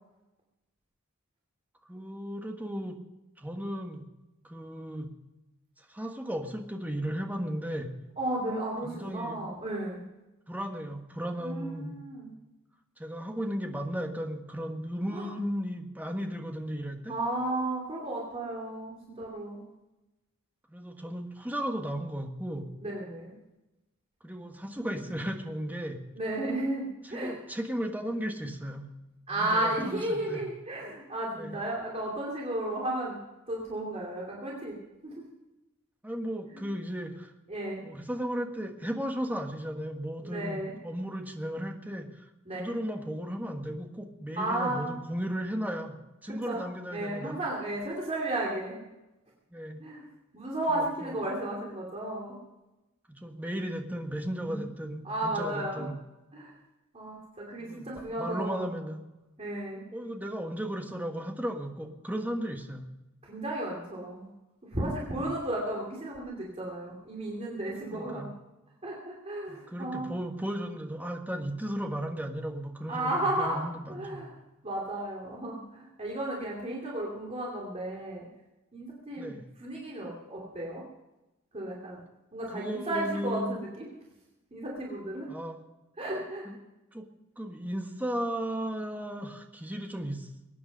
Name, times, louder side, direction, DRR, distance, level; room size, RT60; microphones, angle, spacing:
voice 1, 1.9-3.0 3.4-4.0 4.4-5.1 5.9-7.9 8.8-9.4 10.5-12.0 13.0-17.1 20.7-22.7 24.2-26.0 27.0-28.9 29.3-30.4 31.4-31.6 36.0-37.3 37.8-42.1 42.5-46.0 46.2-47.4 49.5-49.8 50.7-51.1 53.1-56.0 57.6-57.9 58.2-59.0 59.9-62.9 65.2-65.3 67.9-68.3 69.5-74.2 79.2-79.4 82.5-83.6 85.3-85.6 86.4-86.6 86.9-87.1 87.4-90.3, equal, 10° right, 3 dB, 1.5 m, -35 dB
voice 2, 8.2-10.0 11.4-12.3 15.1-15.3 17.1-19.6 22.8-23.3 26.1-27.4 29.3-33.2 33.5-34.8 35.0-35.3 36.5-36.6 37.5-37.8 40.2-40.7 42.4-42.7 44.4-44.9 46.5-46.6 46.9-48.8 49.8-50.0 50.3-52.4 54.4-54.6 55.0-55.9 56.3-56.5 56.9-58.7 59.4-59.8 63.2-64.3 64.6-68.3 68.8-70.1 72.9-74.4 74.6-78.2 78.7-79.3 79.6-80.8 81.5-82.0 82.3-84.0 84.5-85.3 86.0-86.5, right 1 dB, 30° right, -3 dB, 2.7 m, -33 dB
22.5 x 9.4 x 5.4 m, 1.0 s
head